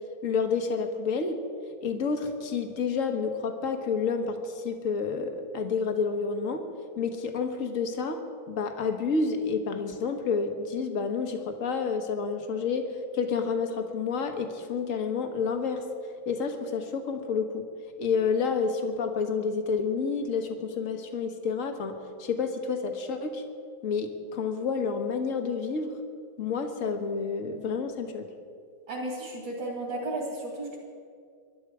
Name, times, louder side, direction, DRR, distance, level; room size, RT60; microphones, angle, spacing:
voice 1, 0.2-1.4 1.8-6.6 7.0-8.2 8.5-12.9 13.1-15.8 16.3-17.6 18.0-21.9 22.2-23.4 23.8-25.9 26.4-28.3, left 5 dB, 45° left, 5 dB, 1.6 m, -29 dB
voice 2, 28.9-30.8, right 1 dB, 60° right, -1 dB, 3.4 m, -34 dB
24.5 x 12.0 x 4.8 m, 2.2 s
omnidirectional pair, 2.2 m